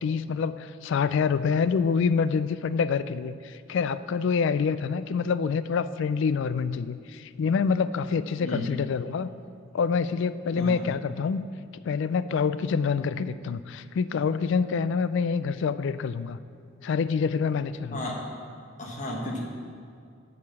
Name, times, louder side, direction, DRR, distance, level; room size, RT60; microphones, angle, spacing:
voice 1, 0.0-9.3 9.7-11.4 11.8-16.4 16.8-18.1, left 5 dB, 60° left, 14 dB, 0.3 m, -26 dB
voice 2, 18.8-19.4, left 1 dB, 35° left, -1 dB, 1.3 m, -33 dB
8.2 x 4.8 x 7.3 m, 2.3 s
head